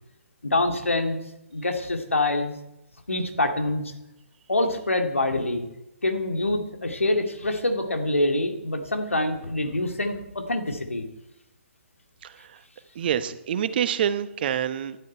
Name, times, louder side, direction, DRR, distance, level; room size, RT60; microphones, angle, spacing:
voice 1, 0.4-1.2 1.5-2.5 3.1-3.9 4.5-5.6 6.0-11.1, left 2 dB, 80° left, 5 dB, 2.4 m, -25 dB
voice 2, 12.2-12.6 12.9-15.0, right 9 dB, 45° right, 12 dB, 1.1 m, -27 dB
17.5 x 11.5 x 4.5 m, 0.89 s
figure-of-eight pair, 130°, 7 cm